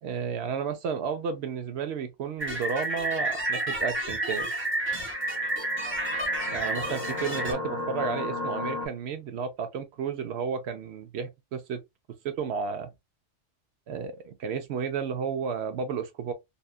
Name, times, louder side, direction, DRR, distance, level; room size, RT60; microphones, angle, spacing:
voice 1, 0.0-4.5 6.5-11.8 12.2-12.9 13.9-16.3, right 6 dB, 70° right, 0.8 m, -32 dB
sound 1, 2.4-7.5, right 1 dB, 10° right, 0.7 m, -30 dB
sound 2, 4.9-8.9, left 2 dB, 35° left, 1.0 m, -35 dB
2.7 x 2.2 x 2.3 m
omnidirectional pair, 1.2 m